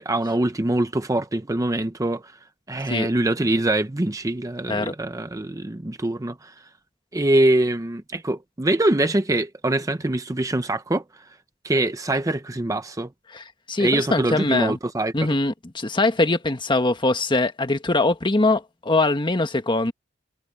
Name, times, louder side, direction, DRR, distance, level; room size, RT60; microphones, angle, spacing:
voice 1, 0.0-2.2 2.7-6.5 7.1-11.0 11.6-13.1 13.8-15.1, right 1 dB, 15° right, 0.6 m, -23 dB
voice 2, 13.3-14.8 15.1-19.9, left 2 dB, 25° left, 1.4 m, -22 dB
head